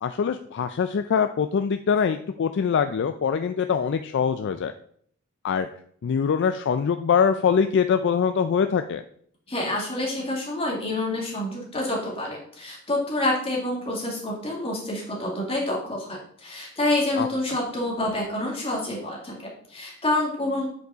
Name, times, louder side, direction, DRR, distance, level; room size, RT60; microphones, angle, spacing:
voice 1, 0.0-4.7 5.4-5.7 6.0-9.0 17.2-17.3, left 6 dB, 55° left, 9 dB, 0.3 m, -23 dB
voice 2, 9.5-20.7, left 1 dB, 25° left, -2 dB, 2.1 m, -28 dB
8.2 x 5.2 x 3.9 m, 0.63 s
head